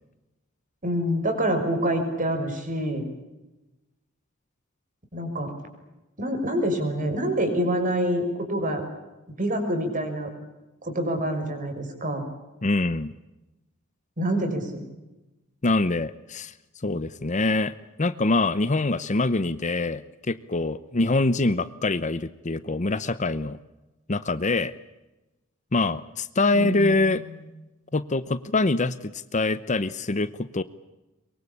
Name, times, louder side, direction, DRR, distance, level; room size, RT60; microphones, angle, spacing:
voice 1, 0.8-3.1 5.1-5.5 6.2-8.2 8.5-8.8 9.4-10.3 10.8-12.3 14.2-14.8 26.5-27.4, equal, 40° right, 6 dB, 5.9 m, -26 dB
voice 2, 12.6-13.1 15.6-16.5 16.8-17.7 18.0-23.6 24.1-24.7 25.7-27.2 27.9-30.6, left 2 dB, 35° left, 15 dB, 0.8 m, -24 dB
23.5 x 23.0 x 8.6 m, 1.0 s
head